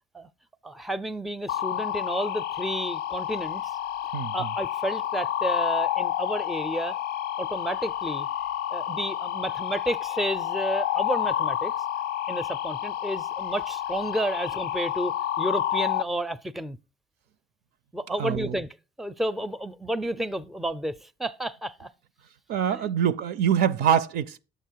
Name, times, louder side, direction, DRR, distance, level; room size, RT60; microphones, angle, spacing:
voice 1, 0.6-3.6 4.3-7.0 7.4-8.3 8.7-11.7 12.3-16.8 17.9-18.7 19.0-21.9 22.8-22.9, right 1 dB, ahead, 0.4 m, -31 dB
sound 1, 1.5-16.0, left 11 dB, 65° left, 0.4 m, -29 dB
voice 2, 18.2-18.6 22.5-24.4, right 8 dB, 75° right, 0.5 m, -24 dB
8.7 x 6.6 x 4.5 m
cardioid pair, 110°, 17 cm